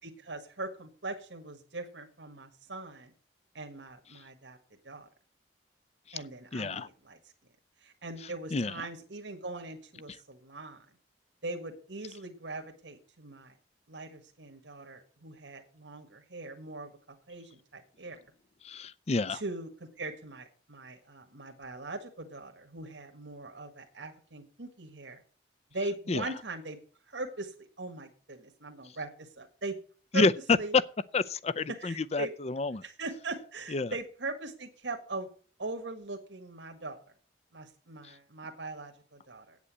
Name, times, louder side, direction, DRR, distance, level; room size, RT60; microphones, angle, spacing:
voice 1, 0.0-3.1 3.5-4.6 4.8-5.1 6.1-7.2 7.8-10.8 11.4-13.5 13.9-16.9 17.3-18.2 19.3-25.2 25.7-26.8 27.1-29.8 30.1-30.3 30.6-30.7 31.7-32.3 32.8-35.3 35.6-37.0 37.5-39.6, right 2 dB, 90° right, 1.7 m, -41 dB
voice 2, 6.5-6.9 8.5-8.7 18.6-19.4 26.1-26.2 30.1-30.3 31.1-32.8 33.7-33.9, left 3 dB, 35° left, 0.5 m, -29 dB
8.6 x 8.2 x 8.2 m
head